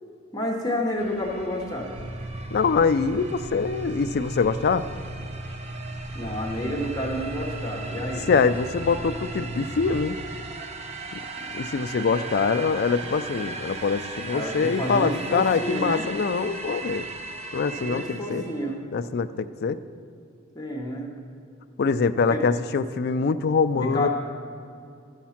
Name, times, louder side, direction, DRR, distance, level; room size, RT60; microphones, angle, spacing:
voice 1, 0.3-1.9 6.1-8.3 11.4-11.5 14.3-16.0 17.8-18.8 20.5-21.1 22.3-22.5 23.7-24.1, equal, 15° left, -1 dB, 1.0 m, -29 dB
sound 1, 1.0-18.7, right 3 dB, 30° right, 0.7 m, -38 dB
sound 2, 2.0-10.0, right 1 dB, 85° right, 1.0 m, -37 dB
voice 2, 2.5-4.9 8.3-10.2 11.1-11.2 11.5-17.1 17.5-18.4 18.9-19.8 21.8-24.1, left 5 dB, 50° left, 11 dB, 0.4 m, -24 dB
13.0 x 7.3 x 5.8 m, 2.4 s
head